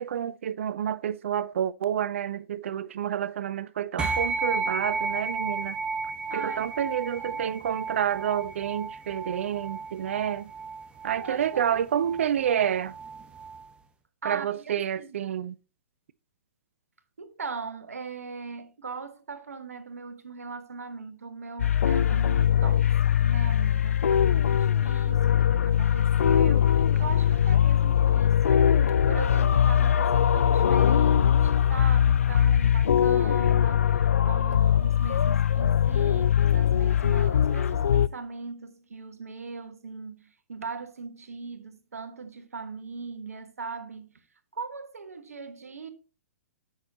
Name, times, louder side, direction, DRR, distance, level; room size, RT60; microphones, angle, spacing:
voice 1, 0.0-5.8 6.3-10.5 11.0-12.9 14.2-15.5, right 9 dB, 55° right, 0.4 m, -29 dB
sound 1, 4.0-13.7, right 4 dB, 10° right, 0.8 m, -33 dB
voice 2, 6.3-7.5 11.1-11.8 14.2-15.2 17.2-44.1 44.5-45.9, right 4 dB, 70° right, 1.3 m, -40 dB
sound 2, 21.6-38.1, left 9 dB, 65° left, 0.4 m, -21 dB
8.0 x 6.2 x 3.9 m
figure-of-eight pair, 115°, 8 cm